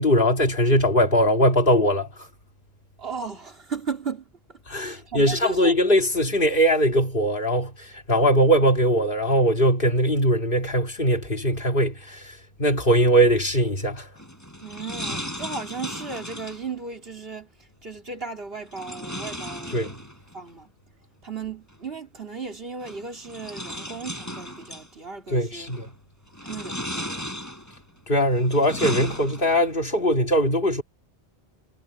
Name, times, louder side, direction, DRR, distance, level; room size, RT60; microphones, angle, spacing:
voice 1, 0.0-2.3 4.7-14.1 19.7-19.9 25.3-25.9 28.1-30.8, equal, 60° left, 2.6 m, -21 dB
voice 2, 3.0-5.7 14.6-20.0 20.3-20.7 21.2-25.7 26.4-27.3, right 5 dB, 70° right, 3.6 m, -36 dB
sound 1, 14.2-16.7 18.7-20.4 21.7-21.8 22.8-24.9 25.5-25.9 26.3-27.8 28.3-29.7, equal, 15° left, 7.8 m, -35 dB
omnidirectional pair, 1.1 m